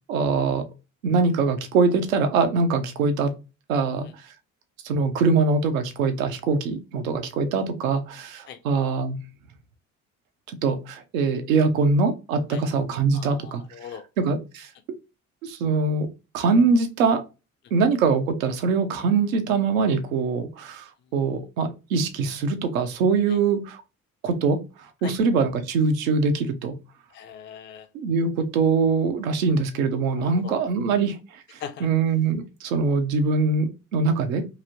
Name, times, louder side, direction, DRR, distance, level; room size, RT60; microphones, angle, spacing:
voice 1, 0.1-0.6 1.0-3.3 3.7-4.1 4.8-9.2 10.6-13.6 14.2-14.7 15.4-16.1 16.3-17.2 17.7-23.8 24.2-24.6 25.0-26.7 27.9-34.5, right 4 dB, 80° right, 0.6 m, -23 dB
voice 2, 13.1-14.1 23.3-23.4 25.0-25.1 27.1-27.9 30.1-30.5 30.9-31.0 31.6-31.9, left 8 dB, 30° left, 0.4 m, -40 dB
3.0 x 2.7 x 2.5 m
figure-of-eight pair, 50°, 41 cm